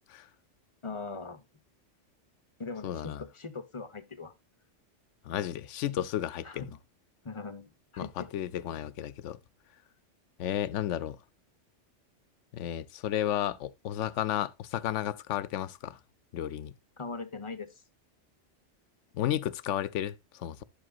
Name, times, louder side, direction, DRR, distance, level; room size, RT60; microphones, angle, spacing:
voice 1, 0.8-1.4 2.6-4.3 6.4-6.7 7.2-8.3 17.0-17.8, left 4 dB, 30° left, 0.9 m, -40 dB
voice 2, 2.8-3.2 5.2-6.7 8.0-9.4 10.4-11.2 12.5-16.0 16.3-16.7 19.1-20.6, left 11 dB, 80° left, 1.0 m, -33 dB
11.5 x 7.7 x 2.4 m
omnidirectional pair, 1.2 m